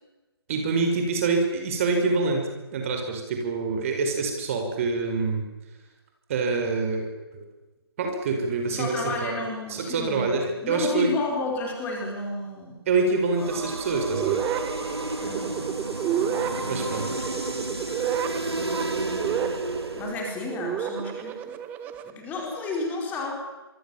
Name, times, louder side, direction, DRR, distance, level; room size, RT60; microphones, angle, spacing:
voice 1, 0.5-5.4 6.3-7.4 8.0-9.0 9.2-9.4 9.7-11.1 12.9-14.4 16.7-17.1, right 4 dB, 30° right, 4 dB, 5.4 m, -26 dB
voice 2, 8.7-12.8 15.2-15.7 16.4-17.8 18.4-19.0 20.0-21.6 22.0-23.3, left 2 dB, 10° left, 0 dB, 4.7 m, -32 dB
sound 1, 13.3-20.3, right 2 dB, 80° right, 4.3 m, -32 dB
sound 2, 14.1-22.1, right 9 dB, 15° right, 1.3 m, -31 dB
26.5 x 24.5 x 7.3 m, 1.1 s
figure-of-eight pair, 140°, 13 cm